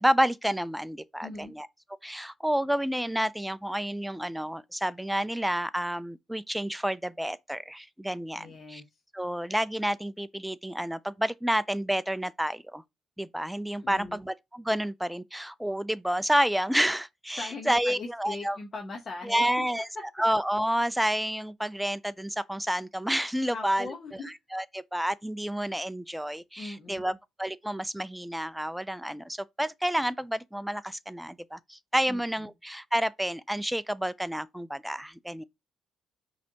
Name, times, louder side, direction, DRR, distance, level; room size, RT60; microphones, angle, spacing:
voice 1, 0.0-1.7 2.0-8.8 9.1-12.8 13.2-18.6 19.3-19.9 20.2-27.1 27.4-35.4, equal, 5° right, 0.4 m, -29 dB
voice 2, 1.2-1.5 8.4-8.8 13.8-14.2 17.4-19.5 23.5-24.3 26.6-27.2 32.1-32.5, left 3 dB, 40° left, 1.0 m, -40 dB
5.0 x 3.3 x 2.8 m
cardioid pair, 90°, 0 cm